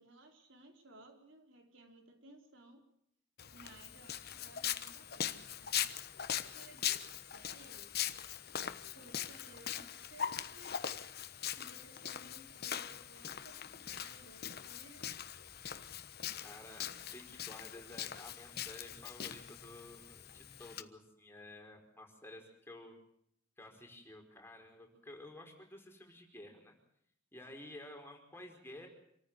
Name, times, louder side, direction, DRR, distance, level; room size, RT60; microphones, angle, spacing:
voice 1, 0.0-2.8 3.5-5.9 6.4-8.0 8.8-10.8 11.5-15.2, right 2 dB, 85° right, 3 dB, 4.4 m, -59 dB
Walk footsteps, 3.4-20.8, left 9 dB, 55° left, 1.1 m, -41 dB
voice 2, 16.4-22.9 23.6-26.7 27.3-28.9, left 1 dB, 10° left, 2 dB, 5.0 m, -52 dB
27.0 x 14.5 x 8.2 m, 0.71 s
head